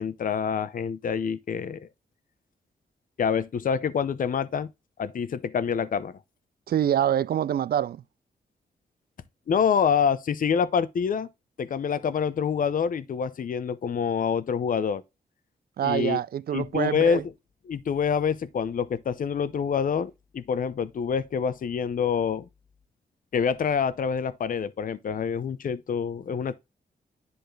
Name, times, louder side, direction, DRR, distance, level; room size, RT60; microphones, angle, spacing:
voice 1, 0.0-1.9 3.2-4.7 5.0-6.2 9.5-11.3 11.6-15.0 15.8-16.2 16.5-17.2 17.7-22.5 23.3-26.6, left 7 dB, 50° left, 0.6 m, -26 dB
voice 2, 6.7-8.0 15.8-17.2, right 10 dB, 60° right, 0.4 m, -25 dB
10.5 x 4.1 x 3.2 m
cardioid pair, 105°, 18 cm